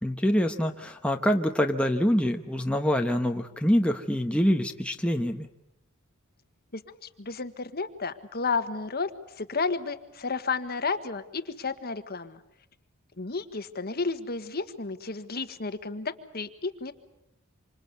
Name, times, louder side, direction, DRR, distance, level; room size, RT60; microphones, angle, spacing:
voice 1, 0.0-5.5, equal, 5° left, 3 dB, 1.2 m, -25 dB
voice 2, 6.7-9.1 9.4-12.4 13.2-16.9, left 4 dB, 45° left, 10 dB, 1.5 m, -32 dB
27.0 x 26.0 x 8.2 m, 0.82 s
head